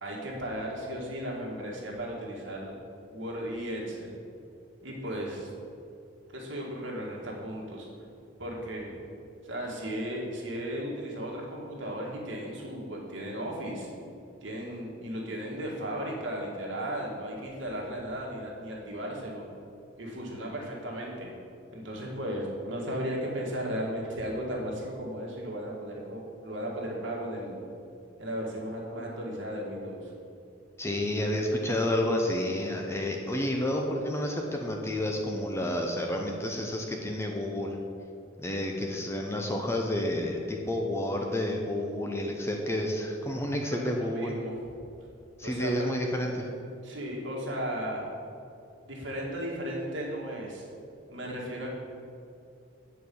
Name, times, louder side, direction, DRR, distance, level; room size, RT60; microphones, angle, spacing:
voice 1, 0.0-2.8 3.1-4.2 4.8-5.5 6.3-7.9 8.4-8.9 9.4-13.9 14.4-19.5 20.0-21.3 21.7-27.6 28.2-30.1 43.7-44.5 45.4-45.9 46.8-48.0 48.8-50.6 51.1-51.7, equal, 60° right, -3 dB, 1.8 m, -35 dB
voice 2, 30.8-37.8 38.4-44.3 45.4-46.5, left 1 dB, 15° left, 1 dB, 0.6 m, -30 dB
8.4 x 4.8 x 7.0 m, 2.6 s
head